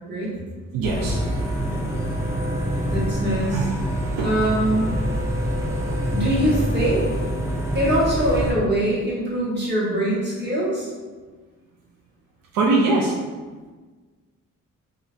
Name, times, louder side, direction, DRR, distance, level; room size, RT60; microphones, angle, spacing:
voice 1, 0.7-1.2 1.5-1.6 1.9-2.1 3.5-3.7 4.2-4.3 12.5-13.1, right 3 dB, 85° right, -1 dB, 0.5 m, -22 dB
sound 1, 0.8-8.5, equal, 10° right, 0.6 m, -25 dB
voice 2, 2.8-3.6 4.2-4.9 6.1-7.0 7.7-10.9, right 1 dB, 35° right, -6 dB, 1.4 m, -23 dB
3.6 x 2.3 x 2.6 m, 1.4 s
cardioid pair, 70°, 33 cm